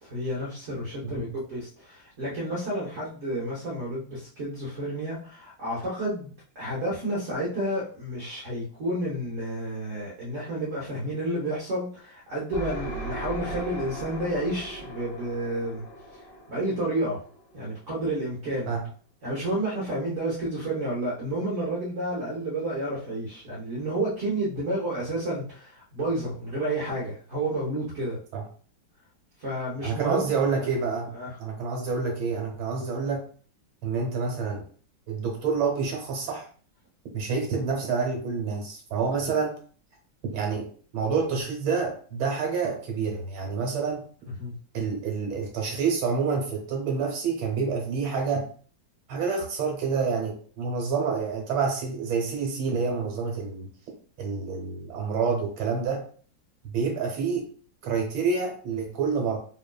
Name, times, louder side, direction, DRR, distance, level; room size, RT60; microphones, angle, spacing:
voice 1, 0.0-15.8 16.5-17.2 17.5-18.7 19.2-28.2 29.4-30.7 31.1-31.3 44.2-44.5, right 1 dB, 45° right, -7 dB, 1.2 m, -30 dB
sound 1, 12.5-18.1, right 2 dB, 75° left, 1.9 m, -38 dB
voice 2, 29.8-31.1 31.4-33.2 33.8-34.6 35.1-36.4 37.1-39.5 40.3-44.0 44.7-48.5 49.1-53.7 54.2-56.0 56.7-57.4 57.8-59.4, right 5 dB, 90° right, 1 dB, 1.8 m, -28 dB
4.2 x 3.1 x 2.3 m, 0.43 s
omnidirectional pair, 2.1 m